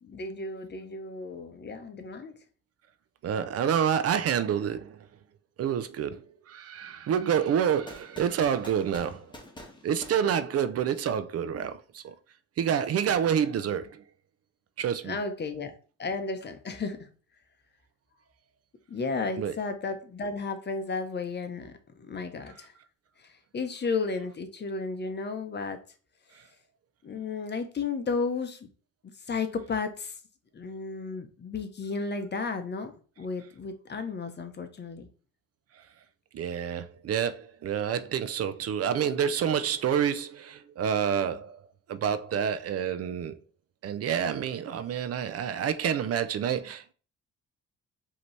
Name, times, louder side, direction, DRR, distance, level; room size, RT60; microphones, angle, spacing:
voice 1, 0.0-2.4 15.0-15.7 16.0-17.1 18.9-22.7 23.2-25.8 27.0-28.7 29.2-30.2 30.5-35.1, left 4 dB, 35° left, 0.8 m, -33 dB
voice 2, 3.2-5.1 5.6-9.3 9.8-12.1 12.6-14.0 14.8-15.2 19.4-19.5 36.3-41.6 41.9-43.4 43.8-46.9, right 8 dB, 55° right, 0.5 m, -28 dB
sound 1, 7.9-11.0, left 1 dB, 15° left, 1.3 m, -48 dB
5.0 x 2.9 x 3.2 m
cardioid pair, 90°, 30 cm